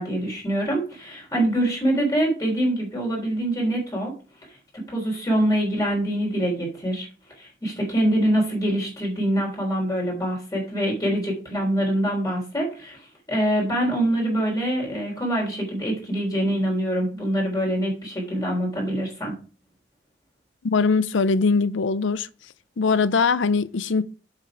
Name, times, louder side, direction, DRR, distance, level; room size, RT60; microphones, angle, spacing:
voice 1, 0.0-4.1 4.7-7.1 7.4-13.0 13.3-19.3, right 1 dB, 20° left, 3.6 m, -24 dB
voice 2, 20.6-22.3 22.8-24.0, left 4 dB, 80° left, 0.6 m, -21 dB
7.7 x 5.7 x 4.8 m
head